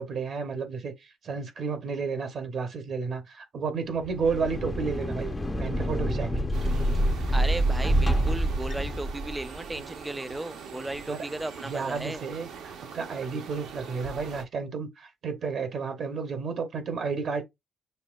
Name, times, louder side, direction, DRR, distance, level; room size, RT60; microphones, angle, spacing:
voice 1, 0.0-6.5 11.1-11.2 11.6-12.5 12.9-17.4, right 5 dB, 60° right, 1.0 m, -32 dB
sound 1, 4.0-9.6, right 1 dB, 20° left, 0.8 m, -27 dB
sound 2, 6.5-14.4, right 6 dB, 80° right, 1.1 m, -43 dB
voice 2, 7.3-12.2, right 1 dB, 10° right, 0.4 m, -35 dB
6.7 x 2.7 x 2.5 m
cardioid pair, 90°, 0 cm